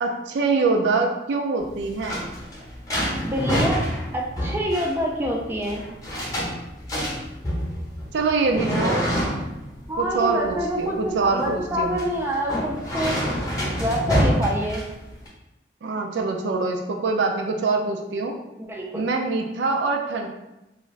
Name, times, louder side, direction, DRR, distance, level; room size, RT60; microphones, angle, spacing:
voice 1, 0.0-2.3 8.1-9.1 10.0-12.0 15.8-18.3 18.9-20.3, right 3 dB, 80° right, 2 dB, 0.4 m, -24 dB
sound 1, 1.6-15.3, equal, 20° left, 0.7 m, -27 dB
voice 2, 3.2-3.8 4.1-5.8 8.5-9.0 9.9-13.2 13.8-14.8 18.6-19.0, equal, 10° right, -2 dB, 0.3 m, -26 dB
2.4 x 2.4 x 3.1 m, 0.94 s
head